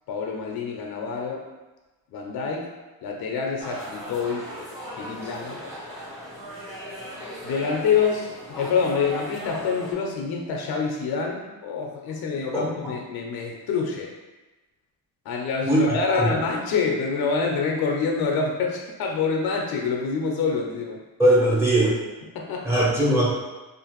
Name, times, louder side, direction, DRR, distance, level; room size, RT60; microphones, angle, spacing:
voice 1, 0.1-1.4 2.1-2.7 3.0-4.5 5.0-5.6 7.4-14.1 15.3-21.0 22.3-22.7, left 5 dB, 85° left, 0 dB, 0.5 m, -26 dB
sound 1, 3.6-9.9, equal, 35° right, 1.2 m, -37 dB
voice 2, 21.2-22.0 22.6-23.3, right 1 dB, 5° right, -7 dB, 0.7 m, -19 dB
2.5 x 2.4 x 2.9 m, 1.2 s
cardioid pair, 145°, 36 cm